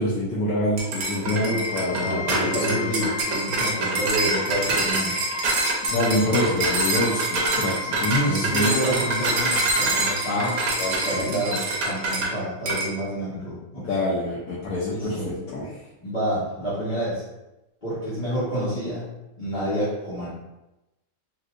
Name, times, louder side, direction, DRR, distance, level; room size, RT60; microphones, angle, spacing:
voice 1, 0.0-3.1 5.9-9.1 10.3-10.5 10.8-11.6 13.8-15.8, left 1 dB, 90° left, -6 dB, 1.1 m, -26 dB
sound 1, 0.8-12.3 12.7-12.9, right 2 dB, 85° right, 1.2 m, -25 dB
voice 2, 1.2-1.6 1.9-5.2 8.2-10.6 11.0-13.9 14.9-15.4 16.0-17.2 17.8-19.1 19.4-20.3, equal, 35° left, -13 dB, 1.1 m, -29 dB
sound 2, 1.3-11.2, left 2 dB, 20° right, 0.7 m, -33 dB
3.3 x 2.8 x 2.4 m, 0.96 s
omnidirectional pair, 1.5 m